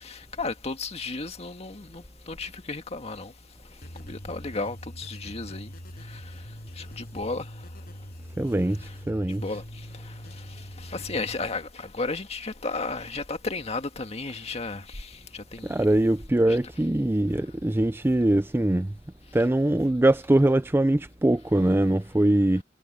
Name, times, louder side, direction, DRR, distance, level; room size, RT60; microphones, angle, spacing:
voice 1, 0.0-3.3 4.0-5.7 6.0-7.7 8.8-9.0 9.4-16.0 16.5-16.6 19.4-19.5, left 3 dB, 35° left, 1.8 m, -34 dB
sound 1, 3.8-11.3, equal, 55° left, 6.3 m, -42 dB
voice 2, 8.4-8.8 9.1-9.4 15.6-18.9 19.3-22.6, right 1 dB, 10° right, 0.4 m, -22 dB
head